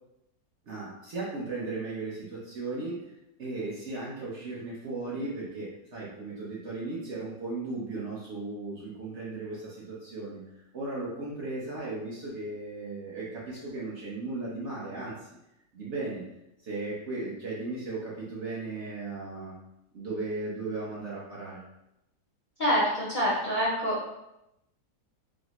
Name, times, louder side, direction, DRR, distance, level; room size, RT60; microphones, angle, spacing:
voice 1, 0.7-3.0 3.4-10.4 10.7-15.3 15.7-16.2 16.6-19.5 19.9-21.6, right 3 dB, 55° right, -6 dB, 0.9 m, -36 dB
voice 2, 22.6-24.1, equal, 45° left, -8 dB, 0.6 m, -26 dB
4.0 x 2.0 x 2.9 m, 0.88 s
omnidirectional pair, 1.8 m